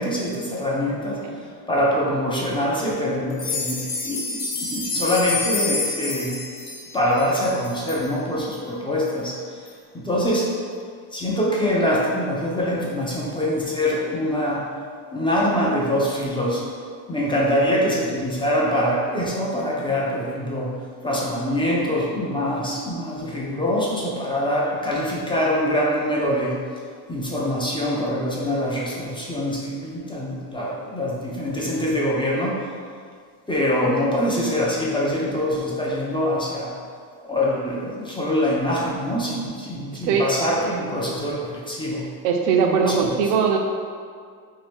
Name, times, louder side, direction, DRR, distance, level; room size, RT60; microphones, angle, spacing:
voice 1, 0.0-1.2 1.7-4.3 4.6-6.4 6.9-9.4 9.9-10.5 11.1-14.6 15.1-16.6 17.1-20.7 21.0-26.6 27.1-32.6 33.5-36.7 37.2-42.0 42.6-43.1, equal, 10° left, -4 dB, 0.4 m, -24 dB
sound 1, 3.3-8.0 8.5-8.6 9.1-9.2 9.7-9.8, left 3 dB, 50° left, 0.9 m, -28 dB
voice 2, 39.9-40.3 42.2-43.6, right 6 dB, 70° right, 3 dB, 0.6 m, -20 dB
2.8 x 2.5 x 3.4 m, 2.1 s
supercardioid pair, 85°, 49 cm